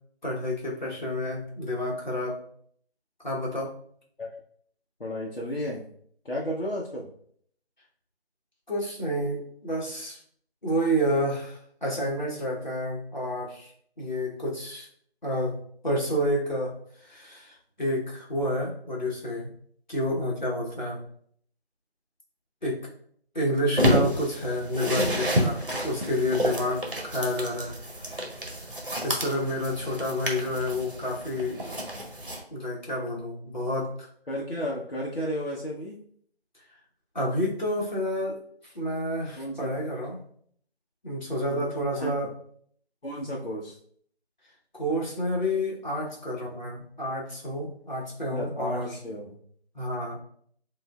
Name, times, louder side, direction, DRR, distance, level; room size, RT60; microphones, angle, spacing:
voice 1, 0.2-2.4 3.2-3.7 8.7-10.2 10.6-13.7 14.0-14.9 15.2-15.6 15.8-16.7 17.0-19.5 19.9-21.0 22.6-22.8 23.3-27.8 29.0-31.6 32.5-34.1 37.1-38.4 38.7-40.2 41.0-42.3 44.7-49.0 49.7-50.2, equal, 45° left, -3 dB, 1.2 m, -29 dB
voice 2, 5.0-5.9 6.2-7.1 34.3-36.0 39.4-39.7 41.5-42.1 43.0-43.7 48.3-49.4, equal, 60° left, -4 dB, 0.9 m, -33 dB
sound 1, 23.8-32.4, equal, 55° right, 1.0 m, -29 dB
7.5 x 2.5 x 2.4 m, 0.63 s
figure-of-eight pair, 170°, 32 cm